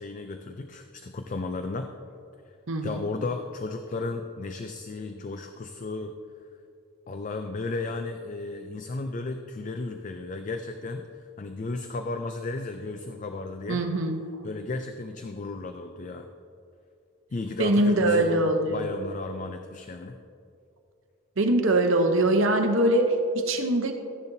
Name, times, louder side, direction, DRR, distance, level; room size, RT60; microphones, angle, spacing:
voice 1, 0.0-1.9 2.8-6.2 7.1-13.8 14.4-16.3 17.3-20.2, left 3 dB, 35° left, 7 dB, 0.4 m, -34 dB
voice 2, 2.7-3.0 13.7-14.2 17.6-18.9 21.4-23.9, right 1 dB, 60° right, 4 dB, 0.8 m, -23 dB
14.5 x 10.5 x 2.7 m, 2.5 s
head